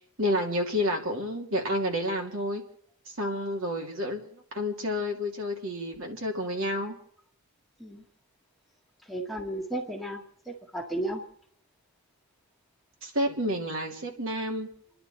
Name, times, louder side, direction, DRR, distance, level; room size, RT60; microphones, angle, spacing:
voice 1, 0.0-2.6 3.0-7.0 13.0-14.7, equal, 60° right, 1 dB, 3.0 m, -30 dB
voice 2, 9.1-10.2 10.5-11.2, right 1 dB, ahead, 0 dB, 1.7 m, -33 dB
29.5 x 11.0 x 4.4 m, 0.65 s
head